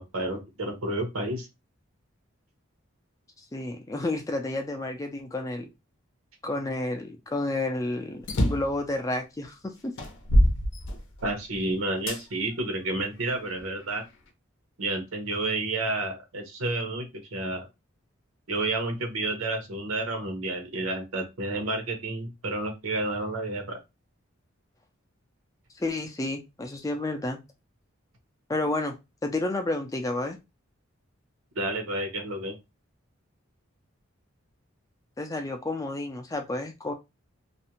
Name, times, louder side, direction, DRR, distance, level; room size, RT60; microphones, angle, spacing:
voice 1, 0.0-1.5 11.2-14.0 14.8-17.7 18.5-23.8 31.6-32.5, right 2 dB, 85° right, 4 dB, 0.8 m, -30 dB
voice 2, 3.4-5.7 6.4-9.9 25.7-27.4 28.5-28.9 29.2-30.4 35.2-36.9, left 2 dB, 15° left, 4 dB, 0.3 m, -31 dB
sound 1, 8.2-8.8 9.4-9.5 10.0-11.4 12.1-12.2 12.9-14.0, equal, 60° left, 0.6 m, -24 dB
2.4 x 2.1 x 2.8 m, 0.24 s
head